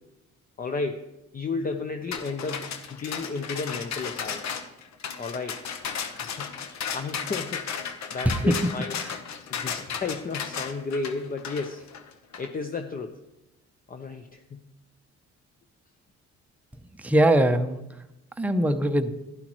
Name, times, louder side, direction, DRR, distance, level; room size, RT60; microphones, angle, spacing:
voice 1, 0.6-4.4 5.2-5.6 5.9-6.5 6.9-7.6 8.1-9.0 9.5-11.8 12.4-13.2 13.9-14.6, left 4 dB, 30° left, 6 dB, 0.7 m, -33 dB
sound 1, 2.1-12.5, left 7 dB, 65° left, 1.0 m, -34 dB
voice 2, 17.0-17.8 18.4-19.1, right 1 dB, 5° right, 7 dB, 0.6 m, -22 dB
11.5 x 10.5 x 3.1 m, 0.95 s
cardioid pair, 90°, 30 cm